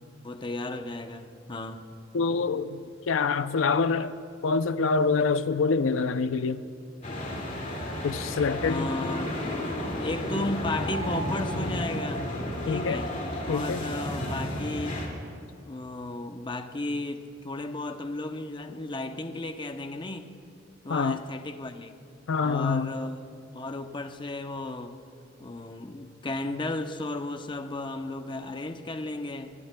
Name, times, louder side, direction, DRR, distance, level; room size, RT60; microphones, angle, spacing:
voice 1, 0.2-1.8 8.6-9.3 10.0-12.3 12.6-13.1 13.4-15.0 15.6-20.3 20.8-21.9 22.4-23.2 23.5-24.9 25.4-29.5, left 2 dB, 25° left, 0.7 m, -34 dB
voice 2, 2.1-4.1 4.4-6.6 8.0-8.9 12.7-13.0 13.5-13.8 20.9-21.2 22.3-22.9, left 4 dB, 90° left, 0.5 m, -26 dB
sound 1, 7.0-15.1, left 1 dB, 40° left, 2.3 m, -32 dB
24.0 x 19.5 x 2.2 m
head